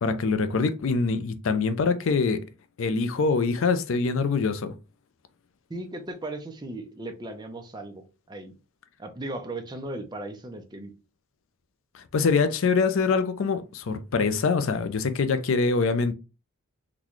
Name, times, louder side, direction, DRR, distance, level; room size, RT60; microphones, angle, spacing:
voice 1, 0.0-2.4 2.8-4.7 11.9-16.1, left 4 dB, 60° left, 0.4 m, -24 dB
voice 2, 5.7-8.5 9.0-10.9, right 2 dB, 20° right, 0.5 m, -37 dB
3.9 x 2.2 x 3.0 m
head